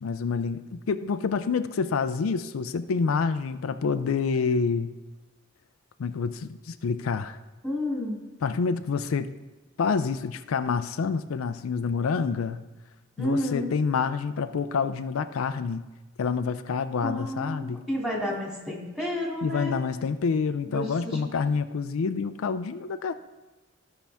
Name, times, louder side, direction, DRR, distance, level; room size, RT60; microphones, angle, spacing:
voice 1, 0.0-4.9 6.0-7.4 8.4-9.3 9.8-12.6 13.2-15.8 16.2-17.8 19.4-23.1, left 5 dB, 90° left, 11 dB, 0.4 m, -27 dB
voice 2, 7.6-8.2 13.2-13.7 17.0-19.7 20.7-21.2, left 1 dB, 5° right, -4 dB, 2.6 m, -30 dB
15.0 x 5.6 x 3.5 m, 1.1 s
head